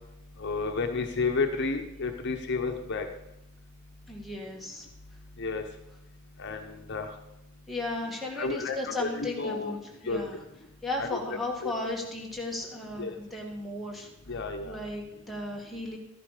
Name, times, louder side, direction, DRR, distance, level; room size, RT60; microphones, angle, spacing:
voice 1, 0.4-3.1 5.4-5.6 6.4-7.1 8.4-9.7 10.1-10.2 11.0-11.1 11.6-11.7 13.0-13.1 14.3-14.8, left 4 dB, 55° left, 4 dB, 0.9 m, -31 dB
voice 2, 4.1-4.9 7.7-9.8 10.0-10.4 10.8-14.4 14.6-16.0, left 2 dB, ahead, -1 dB, 2.0 m, -35 dB
13.0 x 11.0 x 5.0 m, 0.88 s
head